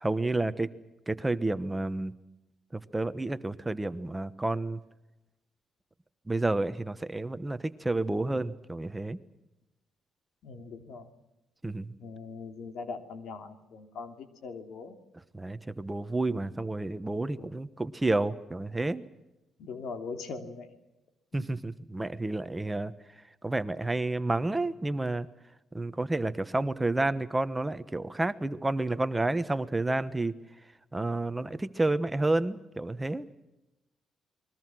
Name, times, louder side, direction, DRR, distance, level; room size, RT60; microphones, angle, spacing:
voice 1, 0.0-0.7 1.1-2.1 2.7-4.8 6.3-9.2 11.6-11.9 15.3-19.0 21.3-22.9 23.4-25.3 25.7-30.3 30.9-33.3, right 2 dB, 15° right, 12 dB, 1.1 m, -30 dB
voice 2, 10.4-11.1 12.0-15.0 16.3-16.4 17.4-17.5 19.6-20.7 21.3-21.4, left 4 dB, 75° left, 7 dB, 2.9 m, -41 dB
29.0 x 22.0 x 6.2 m, 0.95 s
cardioid pair, 90°, 0 cm